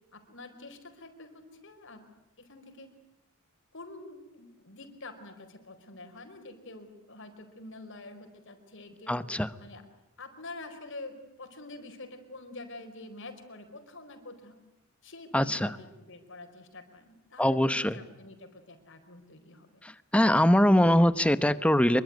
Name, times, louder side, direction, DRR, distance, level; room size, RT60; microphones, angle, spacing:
voice 1, 0.1-2.1 2.4-2.9 3.7-9.3 9.6-9.8 10.2-14.6 15.0-19.8, left 2 dB, 60° left, 7 dB, 4.6 m, -46 dB
voice 2, 9.1-9.5 15.3-15.7 17.4-17.9 20.1-22.0, left 1 dB, 5° left, 13 dB, 0.9 m, -22 dB
25.5 x 23.5 x 9.5 m, 0.90 s
head